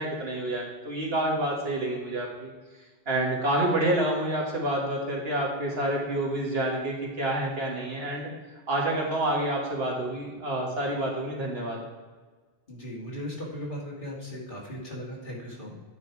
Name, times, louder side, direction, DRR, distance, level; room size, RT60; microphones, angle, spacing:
voice 1, 0.0-2.5 3.1-8.3 8.7-11.8, right 1 dB, 75° right, -3 dB, 2.1 m, -28 dB
voice 2, 12.7-15.7, equal, 55° left, -4 dB, 2.4 m, -37 dB
9.4 x 5.1 x 4.8 m, 1.4 s
omnidirectional pair, 1.1 m